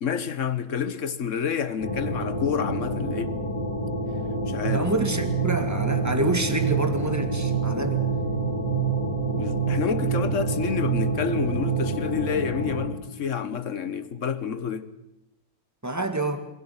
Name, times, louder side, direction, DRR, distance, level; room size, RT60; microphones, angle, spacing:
voice 1, 0.0-3.4 4.5-4.9 9.4-14.9, left 7 dB, 45° left, 1.5 m, -29 dB
sound 1, 1.8-12.9, equal, 65° left, 4.1 m, -29 dB
sound 2, 4.6-12.2, right 12 dB, 45° right, 1.9 m, -28 dB
voice 2, 4.7-8.0 15.8-16.5, right 2 dB, 10° right, 2.0 m, -27 dB
28.0 x 24.5 x 6.0 m
omnidirectional pair, 2.0 m